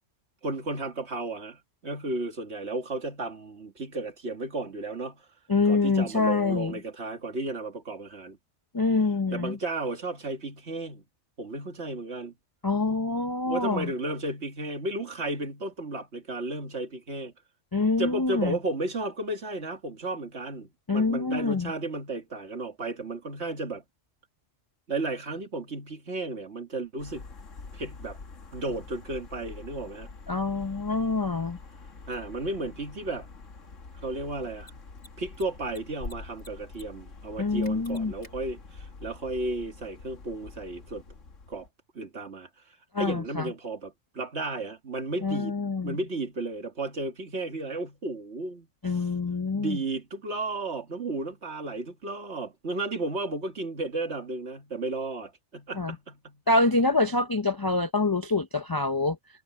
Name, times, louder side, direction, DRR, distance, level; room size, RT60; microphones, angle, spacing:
voice 1, 0.4-5.2 5.7-8.4 9.3-11.0 11.4-12.3 13.5-17.3 18.0-23.8 24.9-27.3 27.7-28.2 28.5-30.1 32.1-33.3 34.0-34.8 35.2-41.0 41.5-41.7 41.9-42.5 43.0-45.6 45.8-49.1 49.5-56.4, right 2 dB, 60° right, 2.3 m, -33 dB
voice 2, 5.5-6.7 8.7-9.6 12.6-13.9 17.7-18.6 20.9-21.7 30.3-31.6 37.4-38.1 42.9-43.5 45.2-46.0 48.8-49.8 55.7-56.0 56.5-59.2, left 3 dB, 30° left, 0.4 m, -26 dB
sound 1, 27.0-41.7, left 4 dB, 80° left, 2.1 m, -46 dB
Mechanisms, 32.1-32.2 34.5-34.7 35.0-35.1 35.3-36.1 36.4-36.8 37.1-37.2 37.6-38.3, left 2 dB, 65° left, 3.9 m, -51 dB
omnidirectional pair, 1.3 m